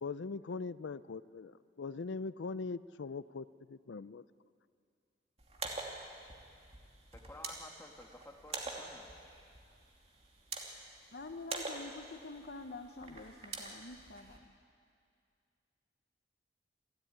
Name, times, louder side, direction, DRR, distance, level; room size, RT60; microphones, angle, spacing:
voice 1, 0.0-4.2, left 4 dB, 85° left, 15 dB, 0.5 m, -41 dB
sound 1, 5.4-14.4, right 3 dB, 35° right, 2.7 m, -46 dB
voice 2, 7.1-9.1, left 1 dB, 15° left, 2 dB, 1.9 m, -52 dB
voice 3, 11.1-14.5, left 3 dB, 60° left, 5 dB, 1.0 m, -47 dB
27.5 x 13.0 x 9.7 m, 2.3 s
head